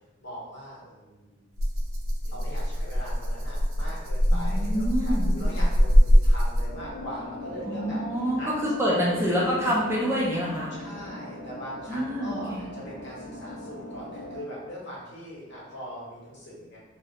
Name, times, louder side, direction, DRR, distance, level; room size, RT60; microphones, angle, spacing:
voice 1, 0.2-1.4 2.2-9.1 10.7-16.8, equal, 55° left, -6 dB, 0.8 m, -41 dB
Rattle (instrument), 1.6-6.9, equal, 85° right, 0.4 m, -22 dB
voice 2, 4.3-5.3 7.7-10.7 11.9-12.6, equal, 10° right, -6 dB, 0.4 m, -27 dB
sound 1, 6.7-14.4, left 1 dB, 85° left, 0.5 m, -40 dB
2.3 x 2.0 x 2.8 m, 1.1 s
head